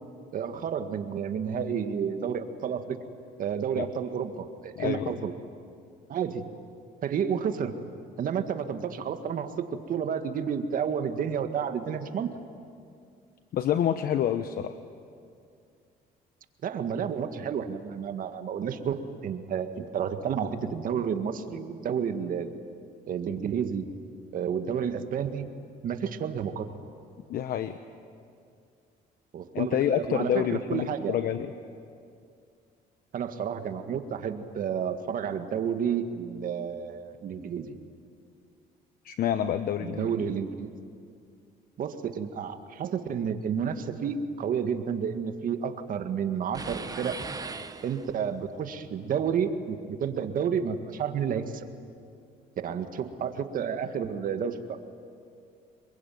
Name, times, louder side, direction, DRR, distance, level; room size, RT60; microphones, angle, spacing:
voice 1, 0.3-3.0 3.4-5.3 6.1-6.5 7.0-7.7 8.2-12.3 16.6-22.6 23.1-23.9 24.3-25.5 25.8-26.7 29.3-31.2 33.1-37.7 39.8-40.7 41.8-47.2 47.8-51.7 52.6-54.8, right 7 dB, 55° right, 8 dB, 1.9 m, -31 dB
voice 2, 4.8-5.1 13.5-14.8 27.3-27.8 29.5-31.5 39.0-40.2, left 10 dB, 60° left, 10 dB, 1.0 m, -27 dB
sound 1, 46.5-48.4, right 4 dB, 20° right, 1.1 m, -38 dB
26.5 x 22.5 x 9.3 m, 2.4 s
cardioid pair, 110°, 17 cm